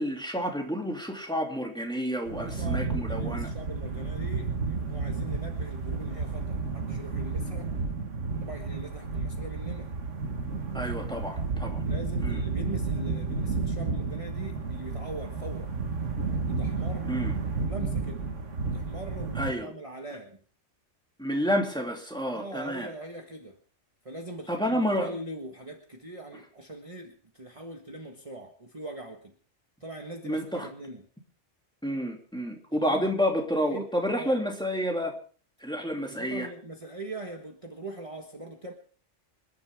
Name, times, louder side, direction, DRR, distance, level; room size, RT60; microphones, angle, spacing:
voice 1, 0.0-3.5 10.7-11.8 12.2-12.4 17.0-17.3 19.4-19.7 21.2-22.9 24.5-25.1 30.2-30.7 31.8-35.2 35.6-36.5, equal, 5° left, 1 dB, 2.6 m, -29 dB
sound 1, 2.2-19.5, right 4 dB, 90° right, 1.9 m, -32 dB
voice 2, 2.3-7.7 8.4-9.9 11.8-15.7 16.3-17.1 17.7-18.3 18.6-20.4 22.3-23.6 24.0-29.3 29.8-31.0 32.7-33.0 33.7-33.9 34.2-34.4 36.1-38.7, right 1 dB, 25° right, 2 dB, 1.6 m, -41 dB
27.0 x 11.0 x 3.6 m, 0.43 s
omnidirectional pair, 1.2 m